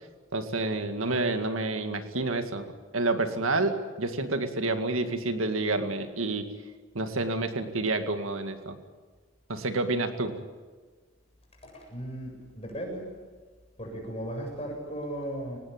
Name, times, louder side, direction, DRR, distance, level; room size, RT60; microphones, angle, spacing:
voice 1, 0.3-2.6 2.9-6.4 6.9-8.8 9.5-10.3, right 2 dB, 80° right, 7 dB, 2.2 m, -29 dB
voice 2, 11.6-13.1 13.8-15.6, right 1 dB, 30° left, 0 dB, 7.9 m, -36 dB
24.5 x 19.5 x 8.9 m, 1.5 s
head